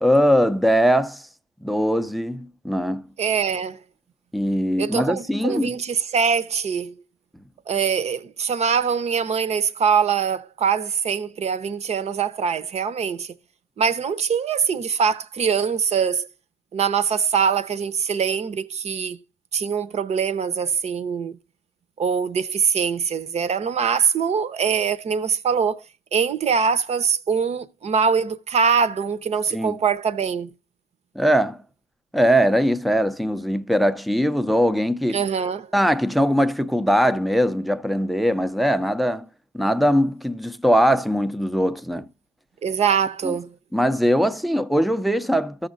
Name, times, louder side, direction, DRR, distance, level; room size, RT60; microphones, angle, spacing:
voice 1, 0.0-1.3 1.6-3.0 4.3-5.7 29.5-29.8 31.2-31.6 32.1-35.2 35.7-39.3 39.5-42.1 43.2-43.3 43.7-45.7, equal, ahead, 0.5 m, -21 dB
voice 2, 3.2-3.8 4.8-6.9 7.7-13.3 13.8-16.3 16.7-19.2 19.5-21.4 22.0-25.8 26.1-30.5 35.1-35.7 42.6-43.5, right 6 dB, 40° right, 0.8 m, -23 dB
14.0 x 6.5 x 2.4 m
cardioid pair, 110°, 17 cm